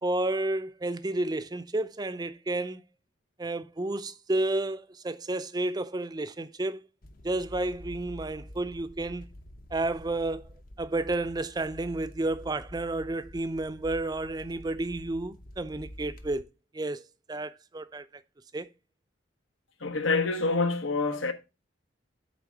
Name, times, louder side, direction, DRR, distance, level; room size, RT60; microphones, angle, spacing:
voice 1, 0.0-2.8 3.4-6.8 7.2-9.2 9.7-10.5 10.8-16.5 16.7-17.0 17.3-18.2 18.5-18.7, right 2 dB, 20° right, 0.4 m, -31 dB
sound 1, 7.0-16.4, equal, 45° left, 0.7 m, -47 dB
voice 2, 19.8-21.3, left 3 dB, 85° left, 1.2 m, -26 dB
8.3 x 3.6 x 6.1 m
head